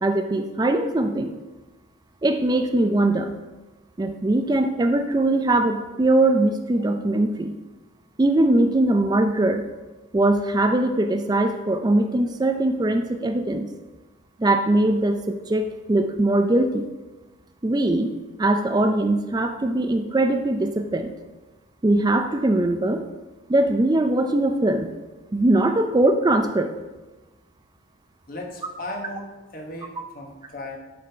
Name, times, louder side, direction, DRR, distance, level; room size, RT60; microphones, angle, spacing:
voice 1, 0.0-1.3 2.2-3.4 4.0-7.5 8.2-9.6 10.1-13.7 14.4-16.9 17.6-18.1 18.4-21.1 21.8-23.0 23.5-24.9 25.3-26.7, right 2 dB, 20° right, 6 dB, 0.4 m, -21 dB
voice 2, 28.3-30.8, left 1 dB, 45° left, 1 dB, 1.2 m, -36 dB
7.5 x 4.2 x 5.6 m, 1.1 s
head